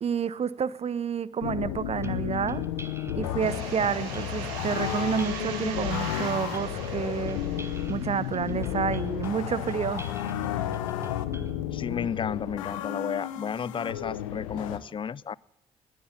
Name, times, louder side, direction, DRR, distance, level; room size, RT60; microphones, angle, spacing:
voice 1, 0.0-2.6 3.2-7.4 7.9-10.0, right 7 dB, 40° right, 0.7 m, -29 dB
sound 1, 1.4-14.8, left 12 dB, 85° left, 0.7 m, -32 dB
sound 2, 2.0-11.6, right 2 dB, 15° right, 1.1 m, -43 dB
sound 3, 3.4-8.9, right 7 dB, 80° right, 1.5 m, -41 dB
voice 2, 11.7-15.4, left 7 dB, 30° left, 0.4 m, -32 dB
20.0 x 7.5 x 7.0 m
hypercardioid pair, 45°, 17 cm